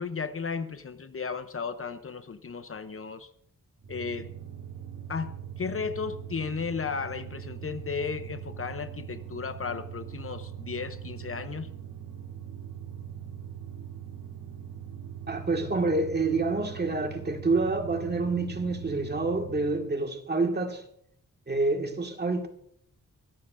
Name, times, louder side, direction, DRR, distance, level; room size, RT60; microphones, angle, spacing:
voice 1, 0.0-3.3 3.9-4.3 5.1-11.7, left 5 dB, 40° left, 0.7 m, -34 dB
sound 1, 3.8-19.9, right 9 dB, 70° right, 3.2 m, -41 dB
voice 2, 15.3-20.8 21.5-22.5, right 3 dB, 30° right, 1.8 m, -27 dB
22.5 x 13.0 x 2.6 m
wide cardioid pair, 125°, 33 cm